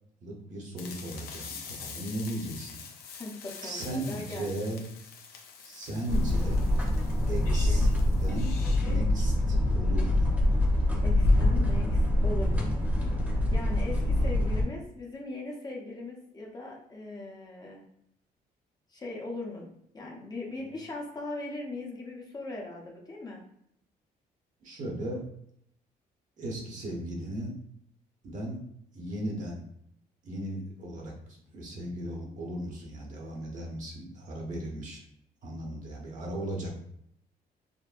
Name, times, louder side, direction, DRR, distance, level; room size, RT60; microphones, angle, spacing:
voice 1, 0.2-2.8 3.6-4.9 5.6-6.6 7.3-7.9 8.2-10.3 24.6-25.2 26.4-27.5 28.2-28.6 28.9-29.6 30.2-35.0 35.4-36.8, right 1 dB, 50° right, -1 dB, 0.9 m, -36 dB
sound 1, 0.8-9.3, left 6 dB, 75° left, 0.6 m, -45 dB
voice 2, 3.2-4.7 11.0-12.7 13.0-17.8 18.9-19.7 19.9-23.4, left 2 dB, 25° left, -1 dB, 0.7 m, -39 dB
sound 2, 6.1-14.6, left 1 dB, 10° right, 0.8 m, -25 dB
5.1 x 2.1 x 2.5 m, 0.70 s
cardioid pair, 150°, 16 cm